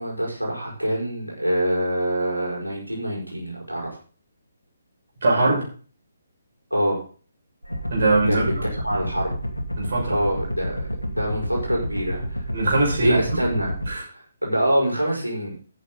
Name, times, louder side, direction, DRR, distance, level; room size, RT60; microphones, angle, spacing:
voice 1, 0.0-4.0 6.7-7.0 8.3-9.3 10.1-12.4 13.0-13.7 14.1-15.6, equal, 90° right, -2 dB, 5.9 m, -25 dB
voice 2, 5.2-5.6 7.9-8.6 9.8-10.2 12.5-13.4 13.9-14.0, right 2 dB, 50° right, -2 dB, 6.5 m, -21 dB
sound 1, 7.6-13.9, equal, 85° left, 2.4 m, -29 dB
13.5 x 9.4 x 3.9 m, 0.40 s
figure-of-eight pair, 140°, 0 cm